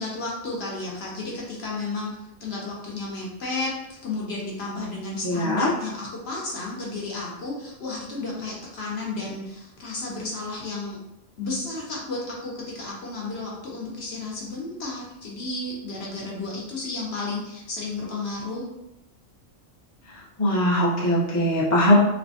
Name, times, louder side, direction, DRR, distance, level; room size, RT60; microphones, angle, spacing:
voice 1, 0.0-2.1 2.4-11.0 11.4-18.7, left 3 dB, 60° left, -3 dB, 0.8 m, -32 dB
voice 2, 5.2-5.7 20.4-22.0, equal, 25° left, -6 dB, 0.4 m, -20 dB
3.3 x 2.1 x 2.6 m, 0.88 s
omnidirectional pair, 1.4 m